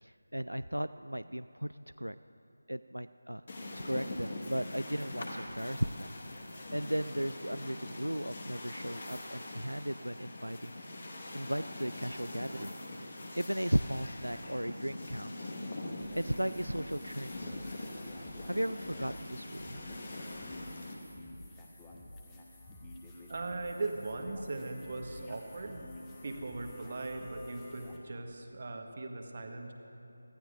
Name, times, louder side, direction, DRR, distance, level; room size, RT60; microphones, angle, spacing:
voice 1, 0.0-1.7 2.0-2.2 2.7-3.4 3.7-6.1 6.7-10.8 11.3-12.8 13.3-15.5 16.1-17.6 18.4-19.9, equal, 85° right, 12 dB, 0.3 m, -36 dB
sound 1, 3.5-20.9, left 1 dB, 35° left, 1.5 m, -43 dB
sound 2, 16.0-28.0, left 1 dB, 10° left, 1.1 m, -50 dB
voice 2, 23.3-25.9 26.2-29.7, right 3 dB, 35° right, 4 dB, 1.2 m, -39 dB
24.5 x 16.0 x 2.6 m, 3.0 s
figure-of-eight pair, 165°, 0 cm